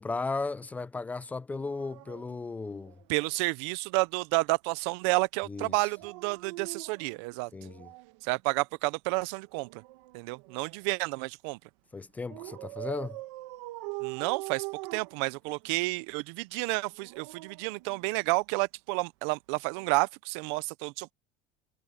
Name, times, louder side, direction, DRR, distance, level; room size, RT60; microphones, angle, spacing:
voice 1, 0.0-2.9 5.5-5.7 7.5-7.9 11.9-13.2, left 3 dB, 10° left, 0.4 m, -35 dB
Dog, 1.5-3.4 5.8-8.2 9.5-11.1 12.3-15.8 16.8-18.5 19.7-19.9, right 23 dB, 85° right, 2.0 m, -43 dB
voice 2, 3.1-7.5 8.2-9.8 10.1-11.6 14.0-14.7 14.9-21.1, right 25 dB, 70° right, 0.7 m, -30 dB
cardioid pair, 160°, 15 cm